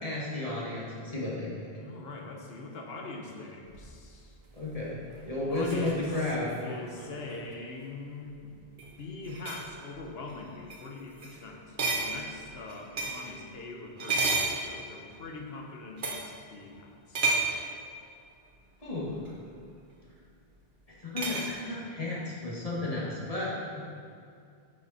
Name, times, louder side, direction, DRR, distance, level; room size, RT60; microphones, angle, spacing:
voice 1, 0.0-1.7 4.5-5.0 5.2-6.5 18.8-19.2 21.0-23.8, left 2 dB, 35° left, -6 dB, 2.0 m, -33 dB
voice 2, 1.7-4.4 5.3-8.6 9.0-17.3, left 3 dB, 70° left, 1 dB, 1.3 m, -43 dB
sound 1, 3.7-7.5 8.6-8.9 9.2-9.7 10.3-10.4 10.7-10.8 11.2-11.4 11.8-13.3 14.0-15.1 16.0-16.3 17.1-17.6 19.3-19.4 21.2-21.5, right 3 dB, 55° right, 1.2 m, -32 dB
8.5 x 6.7 x 4.2 m, 2.4 s
omnidirectional pair, 1.0 m